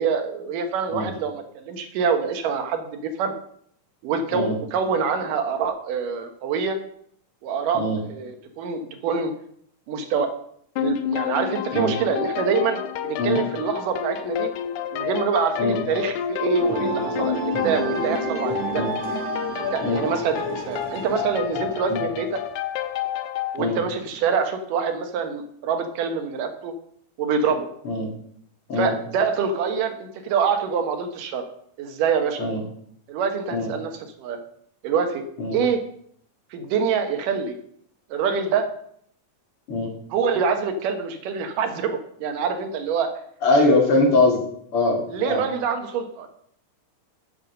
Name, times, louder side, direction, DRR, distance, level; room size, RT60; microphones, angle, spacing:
voice 1, 0.0-3.3 4.0-6.8 7.4-7.8 8.1-9.3 9.9-10.3 10.8-14.5 14.9-18.8 19.6-22.4 23.5-26.7 27.2-27.7 28.8-31.5 31.8-32.5 33.1-33.9 34.2-34.4 34.8-35.2 35.5-35.8 36.5-37.6 38.1-38.7 40.1-43.1 45.1-46.3, right 5 dB, 85° right, 6 dB, 2.8 m, -25 dB
sound 1, 10.8-23.6, left 9 dB, 80° left, 2.0 m, -29 dB
sound 2, 16.6-22.1, right 5 dB, 65° right, 1.9 m, -32 dB
voice 2, 43.4-44.4 44.7-45.4, left 2 dB, 45° left, 0 dB, 2.8 m, -21 dB
7.9 x 7.5 x 6.5 m, 0.66 s
omnidirectional pair, 3.7 m